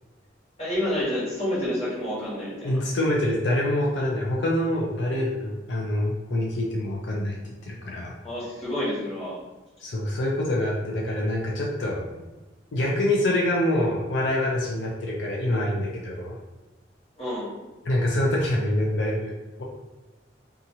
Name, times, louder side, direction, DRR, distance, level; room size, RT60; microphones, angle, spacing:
voice 1, 0.6-2.8 8.2-9.4 17.2-17.5, left 1 dB, 35° left, -9 dB, 1.4 m, -29 dB
voice 2, 2.6-7.4 7.6-8.2 9.8-12.0 12.7-16.4 17.8-19.3 19.6-19.7, left 1 dB, 85° left, -3 dB, 0.5 m, -25 dB
2.7 x 2.4 x 2.8 m, 1.2 s
head